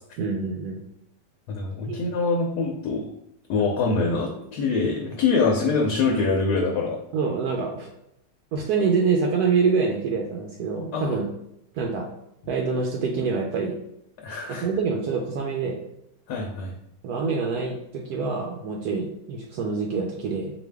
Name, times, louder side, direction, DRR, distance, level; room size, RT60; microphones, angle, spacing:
voice 1, 0.2-0.8 1.8-2.0 7.1-7.9 8.5-11.3 11.7-12.1 12.5-13.8 14.6-15.8 17.0-20.5, right 5 dB, 75° right, 0 dB, 1.0 m, -26 dB
voice 2, 1.5-3.1 3.5-7.0 10.9-11.2 14.2-14.7 16.3-16.7, left 4 dB, 75° left, 1 dB, 1.2 m, -24 dB
4.3 x 2.6 x 3.4 m, 0.78 s
omnidirectional pair, 1.8 m